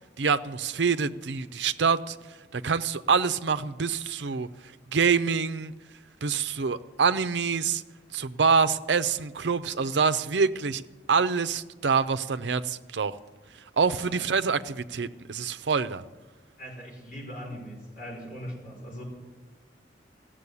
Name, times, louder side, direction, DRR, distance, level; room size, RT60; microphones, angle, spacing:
voice 1, 0.2-2.2 2.5-4.5 4.9-5.7 6.2-7.8 8.1-10.8 11.1-13.1 13.8-16.0, right 5 dB, 75° right, 0.6 m, -26 dB
voice 2, 16.6-19.0, equal, 50° left, 5.6 m, -40 dB
15.5 x 7.6 x 9.7 m
head